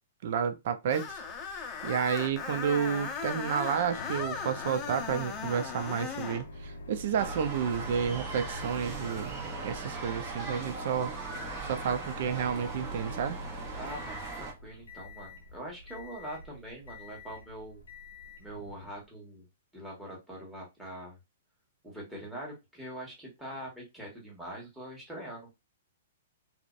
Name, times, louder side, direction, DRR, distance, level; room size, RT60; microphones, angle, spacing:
voice 1, 0.2-1.2 1.5-11.1 11.6-13.4, right 7 dB, 60° right, 0.4 m, -31 dB
Screech, 0.9-6.4, left 6 dB, 25° left, 0.5 m, -37 dB
Microwave oven, 1.1-19.0, left 1 dB, 80° left, 0.5 m, -46 dB
sound 1, 7.2-14.5, right 4 dB, 25° right, 0.9 m, -39 dB
voice 2, 13.8-17.8 18.4-19.4 19.7-21.2 21.8-25.5, right 1 dB, 5° right, 1.2 m, -43 dB
2.5 x 2.0 x 2.4 m
hypercardioid pair, 135°, 0 cm